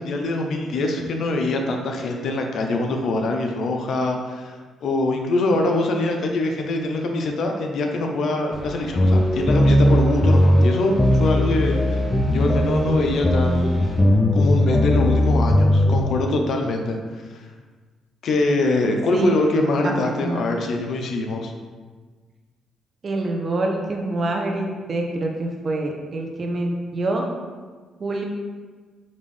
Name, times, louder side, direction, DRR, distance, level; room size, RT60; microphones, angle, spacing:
voice 1, 0.0-4.5 4.8-12.0 12.3-14.0 14.3-17.0 18.2-21.5, left 2 dB, 65° left, 3 dB, 0.6 m, -23 dB
sound 1, 8.5-15.0, right 1 dB, 15° right, 1.2 m, -39 dB
sound 2, 9.0-16.0, left 1 dB, 20° left, 0.3 m, -18 dB
voice 2, 19.8-20.4 23.0-27.3 28.0-28.2, right 2 dB, 45° right, 1 dB, 0.7 m, -26 dB
5.3 x 2.6 x 3.3 m, 1.4 s
cardioid pair, 90°, 0 cm